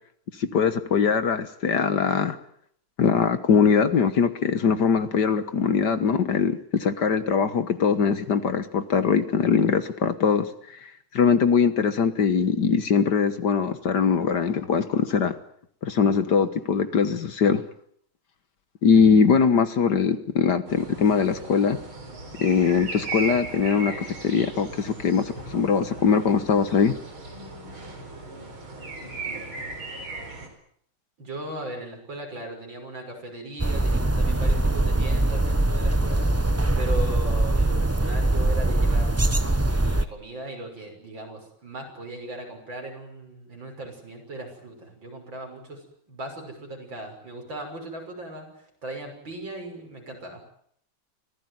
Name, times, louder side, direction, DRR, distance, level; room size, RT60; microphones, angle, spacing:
voice 1, 0.4-2.4 3.0-10.5 11.1-15.4 15.8-17.6 18.8-21.8 22.4-26.9, left 6 dB, 60° left, 12 dB, 1.8 m, -21 dB
sound 1, 20.7-30.5, right 3 dB, 90° right, 5.2 m, -37 dB
voice 2, 31.2-36.3 36.8-39.2 39.6-50.5, right 1 dB, 65° right, 3 dB, 6.9 m, -38 dB
sound 2, 33.6-40.0, right 2 dB, 15° right, 0.6 m, -22 dB
25.0 x 17.0 x 9.4 m, 0.66 s
omnidirectional pair, 2.2 m